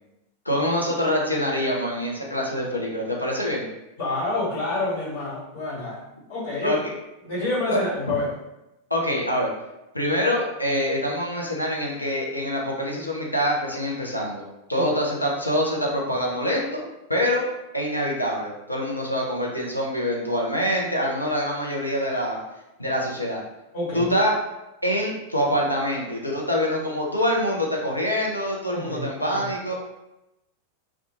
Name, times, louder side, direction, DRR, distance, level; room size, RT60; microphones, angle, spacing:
voice 1, 0.5-3.7 6.6-6.8 7.7-7.8 8.9-9.5 9.9-16.8 17.1-17.4 17.7-22.4 22.8-23.4 23.9-24.4 24.8-29.7, equal, 85° left, -2 dB, 0.5 m, -25 dB
voice 2, 4.0-6.0 6.3-6.8 7.2-8.3 14.8-14.9 23.7-24.1 28.7-29.5, left 2 dB, 55° left, -6 dB, 1.2 m, -28 dB
2.4 x 2.2 x 2.8 m, 0.94 s
figure-of-eight pair, 90°, 0 cm